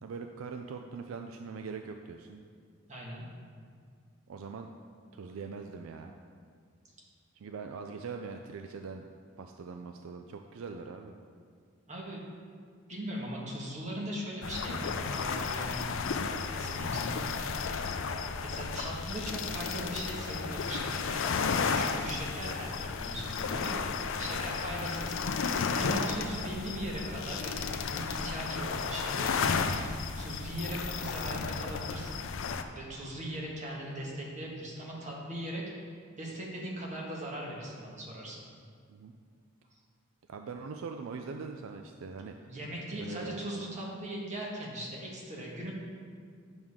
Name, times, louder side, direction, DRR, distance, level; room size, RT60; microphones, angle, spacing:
voice 1, 0.0-2.4 4.3-4.7 5.1-6.1 7.3-9.1 9.4-11.2 24.1-24.4 38.9-39.1 40.3-42.4 43.0-43.4, right 5 dB, 70° right, 5 dB, 0.4 m, -42 dB
voice 2, 2.9-3.2 11.9-12.2 12.9-15.9 16.5-17.3 18.4-25.2 25.6-29.6 30.2-32.2 32.7-35.6 36.2-38.5 42.5-45.7, right 1 dB, 35° right, -3 dB, 1.5 m, -39 dB
sound 1, 14.4-32.6, left 5 dB, 70° left, 0.4 m, -33 dB
8.9 x 6.2 x 3.6 m, 2.1 s
head